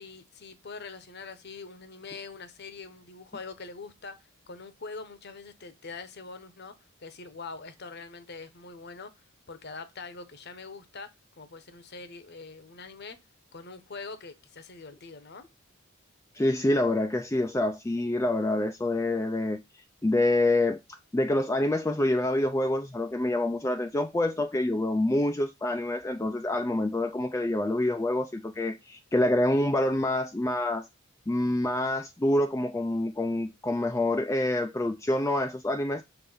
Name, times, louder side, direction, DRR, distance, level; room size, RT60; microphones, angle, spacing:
voice 1, 0.0-6.7 7.0-9.1 9.5-13.2 13.5-15.4, left 4 dB, 50° left, 0.9 m, -43 dB
voice 2, 16.3-19.6 20.0-20.8 21.1-30.8 31.3-36.0, left 1 dB, 15° left, 0.4 m, -26 dB
6.9 x 3.3 x 5.4 m
head